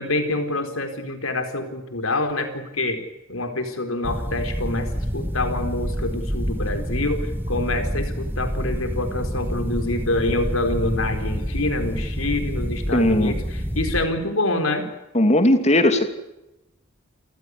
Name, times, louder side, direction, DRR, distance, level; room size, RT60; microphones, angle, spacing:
voice 1, 0.0-3.0 3.3-14.9, left 2 dB, 80° left, 7 dB, 4.4 m, -26 dB
sound 1, 4.0-14.0, equal, 10° right, 2.7 m, -27 dB
voice 2, 12.9-13.3 15.1-16.1, left 1 dB, 35° left, 8 dB, 2.9 m, -18 dB
29.0 x 15.5 x 9.7 m, 0.93 s
head